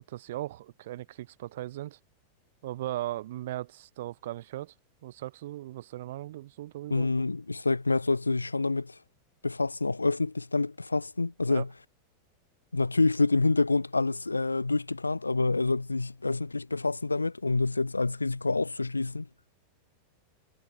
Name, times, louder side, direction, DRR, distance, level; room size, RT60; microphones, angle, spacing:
voice 1, 0.0-2.0 2.6-4.7 5.0-7.1 11.5-11.6, right 15 dB, 55° right, 5.0 m, -38 dB
voice 2, 6.9-9.0 9.4-11.7 12.7-19.3, left 3 dB, 80° left, 5.5 m, -27 dB
figure-of-eight pair, 90°, 0 cm